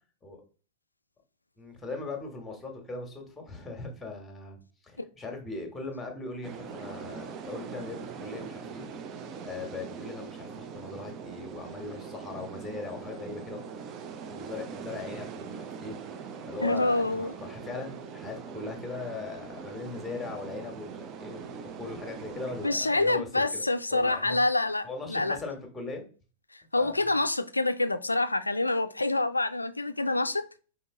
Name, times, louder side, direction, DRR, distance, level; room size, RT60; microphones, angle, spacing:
voice 1, 1.6-9.1 9.4-13.6 14.3-15.9 16.5-23.6 23.9-24.4 24.8-26.0 26.7-27.0, left 3 dB, 10° left, 1.5 m, -39 dB
sound 1, 6.4-22.7, right 6 dB, 35° right, 0.6 m, -42 dB
voice 2, 16.6-17.3 22.6-25.4 26.7-30.4, left 2 dB, 80° left, 0.3 m, -27 dB
5.2 x 2.8 x 3.7 m
figure-of-eight pair, 90°, 0 cm